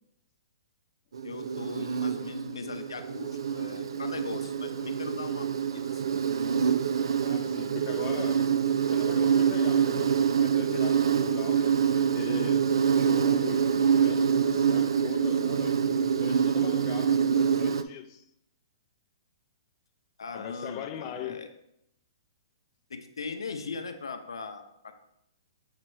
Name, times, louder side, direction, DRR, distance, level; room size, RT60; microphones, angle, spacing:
Insect, 1.1-17.8, right 7 dB, 80° right, 0.4 m, -26 dB
voice 1, 1.2-6.0 20.2-21.5 22.9-24.9, left 4 dB, 90° left, 0.7 m, -39 dB
voice 2, 7.2-8.6 8.8-12.6 12.9-18.3 20.3-21.5, left 10 dB, 35° left, 0.4 m, -41 dB
7.4 x 2.9 x 4.4 m
hypercardioid pair, 140°, 3 cm